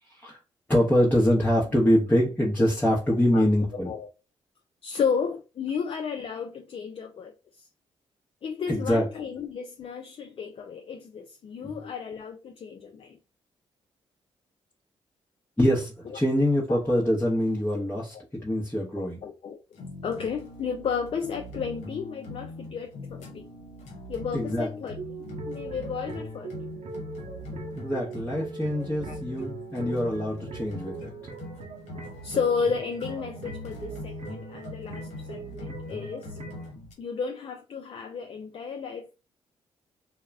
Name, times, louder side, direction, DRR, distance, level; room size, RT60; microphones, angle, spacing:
voice 1, 0.7-3.9 8.7-9.0 11.6-11.8 15.6-18.1 18.4-19.2 24.3-24.7 27.7-31.1, equal, 15° left, 0.8 m, -24 dB
voice 2, 3.7-4.1 4.8-7.7 8.4-13.2 16.1-16.2 16.7-17.0 19.0-19.6 20.0-23.5 24.1-25.0 25.5-26.5 29.1-29.2 32.2-36.4 37.0-39.1, left 6 dB, 50° left, 0.4 m, -33 dB
sound 1, 19.7-36.9, left 1 dB, 75° left, 0.8 m, -41 dB
sound 2, 25.0-36.7, right 4 dB, 65° right, 0.7 m, -41 dB
2.3 x 2.0 x 3.3 m
supercardioid pair, 50°, 12 cm